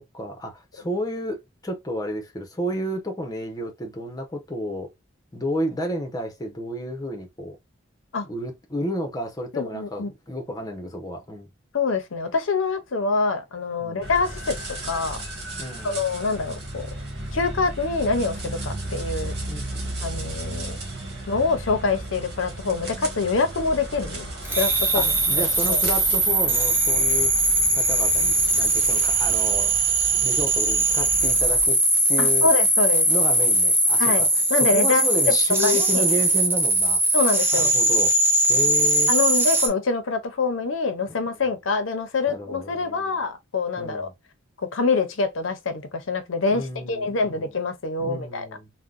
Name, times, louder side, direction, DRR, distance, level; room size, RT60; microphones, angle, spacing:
voice 1, 0.0-4.9 5.3-7.6 8.3-11.5 13.8-14.0 15.6-16.0 19.5-20.2 24.9-27.3 27.7-29.7 30.1-31.8 32.1-32.5 33.0-37.0 37.5-38.1 38.5-39.1 41.1-41.2 42.3-43.2 43.8-44.1 46.5-47.5 48.0-48.7, left 1 dB, 20° left, 0.8 m, -31 dB
voice 2, 9.5-10.1 11.7-14.6 14.9-15.2 15.8-16.9 17.3-19.3 20.0-20.8 21.3-24.3 24.6-25.8 32.2-33.1 34.0-35.3 35.6-36.1 37.1-37.7 39.1-44.1 44.6-48.5, left 4 dB, 85° left, 0.7 m, -25 dB
sound 1, 14.0-31.7, right 1 dB, 55° right, 1.3 m, -35 dB
sound 2, 24.5-39.7, right 2 dB, 10° right, 0.6 m, -20 dB
3.6 x 2.2 x 2.4 m
head